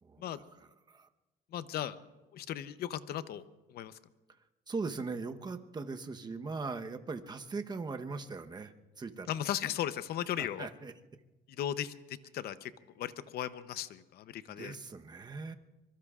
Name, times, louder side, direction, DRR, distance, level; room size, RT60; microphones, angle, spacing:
voice 1, 0.0-1.1 4.7-9.4 10.4-10.9 14.5-15.5, right 4 dB, 25° right, 7 dB, 1.0 m, -40 dB
voice 2, 1.5-2.0 2.3-3.4 3.7-3.9 9.3-10.7 11.5-12.7 13.0-14.7, left 11 dB, 65° left, 13 dB, 0.8 m, -37 dB
25.5 x 23.5 x 2.5 m, 1.1 s
cardioid pair, 110°, 17 cm